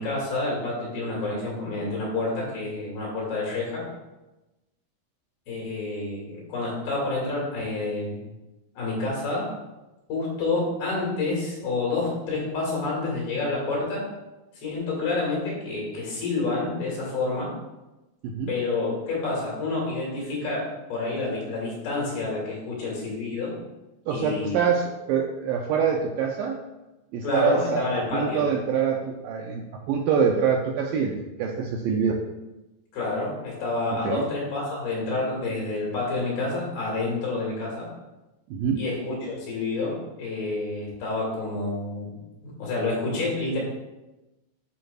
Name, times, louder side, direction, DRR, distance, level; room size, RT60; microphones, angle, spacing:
voice 1, 0.0-3.8 5.5-8.2 8.8-9.5 10.1-14.0 14.5-17.5 18.5-23.5 24.1-24.6 27.2-28.5 32.9-37.9 38.8-42.2 42.4-43.6, left 3 dB, 75° left, -4 dB, 3.8 m, -28 dB
voice 2, 18.2-18.6 24.1-26.6 27.1-31.1 31.4-32.2 33.9-34.2 38.5-38.8, right 7 dB, 85° right, 1 dB, 2.0 m, -25 dB
11.5 x 4.6 x 2.4 m, 1.0 s
omnidirectional pair, 4.5 m